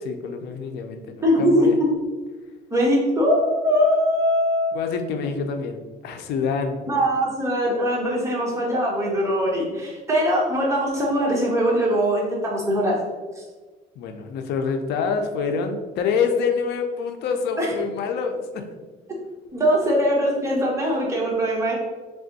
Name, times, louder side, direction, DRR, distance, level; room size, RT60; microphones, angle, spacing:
voice 1, 0.0-1.8 4.7-6.8 14.0-18.6, left 5 dB, 80° left, 6 dB, 0.5 m, -26 dB
voice 2, 1.2-1.7 2.7-4.7 6.9-13.0 17.6-17.7 19.5-21.7, equal, 15° right, -3 dB, 1.4 m, -21 dB
3.4 x 3.4 x 4.0 m, 1.3 s
cardioid pair, 110°, 17 cm